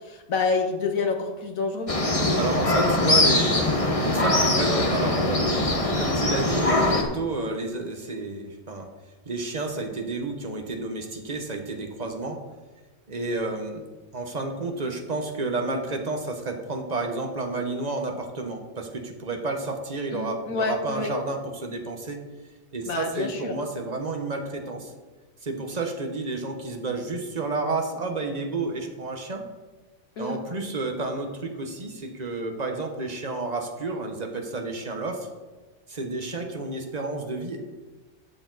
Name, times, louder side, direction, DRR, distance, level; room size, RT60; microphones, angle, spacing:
voice 1, 0.1-1.9 2.7-2.8 20.1-21.1 22.9-23.6 30.2-30.4, left 4 dB, 80° left, 4 dB, 1.6 m, -28 dB
sound 1, 1.9-7.0, left 2 dB, 25° left, 1.1 m, -22 dB
voice 2, 2.3-5.5 5.8-8.9 9.2-12.4 13.1-13.8 14.1-22.2 22.7-24.9 25.4-29.5 30.2-35.3 35.9-37.6, right 3 dB, 30° right, 3 dB, 1.2 m, -30 dB
12.0 x 7.1 x 4.0 m, 1.2 s
omnidirectional pair, 1.4 m